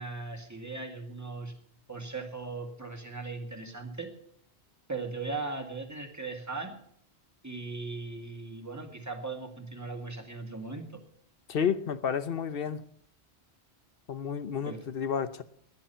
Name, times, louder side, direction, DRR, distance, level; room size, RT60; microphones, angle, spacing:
voice 1, 0.0-1.6 1.9-4.1 4.9-6.8 7.4-11.0 14.7-14.8, right 3 dB, 15° right, 2.0 m, -38 dB
voice 2, 11.5-12.8 14.1-15.4, left 7 dB, 60° left, 1.0 m, -31 dB
18.5 x 10.5 x 5.7 m
omnidirectional pair, 1.1 m